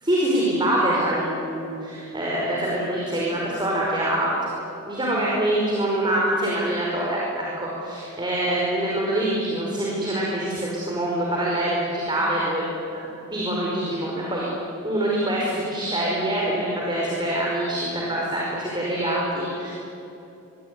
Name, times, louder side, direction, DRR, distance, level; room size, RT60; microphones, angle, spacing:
voice 1, 0.0-4.4 4.9-12.7 12.9-14.5 14.8-19.7, right 1 dB, 20° right, -4 dB, 5.1 m, -25 dB
25.0 x 24.5 x 9.7 m, 2.9 s
head